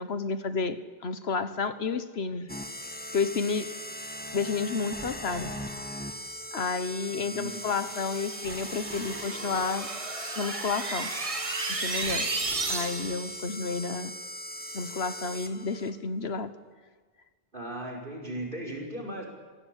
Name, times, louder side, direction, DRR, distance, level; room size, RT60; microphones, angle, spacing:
voice 1, 0.0-2.5 3.1-3.7 4.3-5.5 6.5-9.9 10.4-11.1 11.7-12.3 12.7-14.1 14.7-16.5, left 4 dB, 85° left, 11 dB, 1.5 m, -31 dB
sound 1, 2.5-15.9, equal, 10° left, 1.7 m, -39 dB
voice 2, 7.2-7.6 17.5-19.3, right 1 dB, 55° right, 1 dB, 5.3 m, -37 dB
sound 2, 7.4-13.3, right 3 dB, 35° right, 1.3 m, -34 dB
27.0 x 17.0 x 8.4 m, 1.5 s
omnidirectional pair, 1.0 m